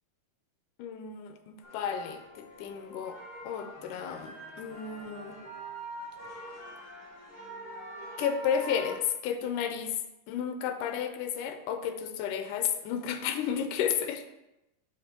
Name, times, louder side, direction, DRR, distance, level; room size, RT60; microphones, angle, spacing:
voice 1, 0.8-5.4 8.2-10.0 10.3-14.2, left 8 dB, 85° left, 8 dB, 2.3 m, -32 dB
sound 1, 1.6-9.0, right 1 dB, 15° left, 3.1 m, -44 dB
7.7 x 6.6 x 4.4 m, 0.93 s
omnidirectional pair, 3.7 m